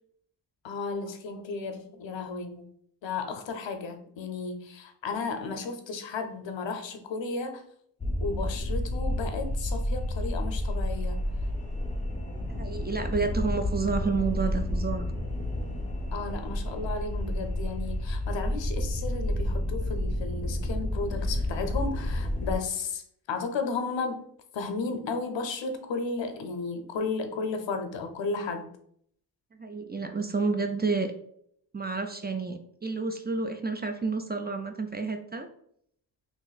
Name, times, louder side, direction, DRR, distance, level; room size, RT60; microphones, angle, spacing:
voice 1, 0.6-2.7 3.0-7.6 8.2-11.2 16.1-23.0 23.3-24.2 24.5-28.7, left 4 dB, 90° left, 7 dB, 0.6 m, -34 dB
sound 1, 8.0-22.6, left 1 dB, 15° left, 0.7 m, -30 dB
voice 2, 12.6-15.1 29.6-31.1 31.7-35.5, right 4 dB, 25° right, 6 dB, 0.3 m, -30 dB
3.0 x 2.5 x 4.0 m, 0.68 s
wide cardioid pair, 75°, 43 cm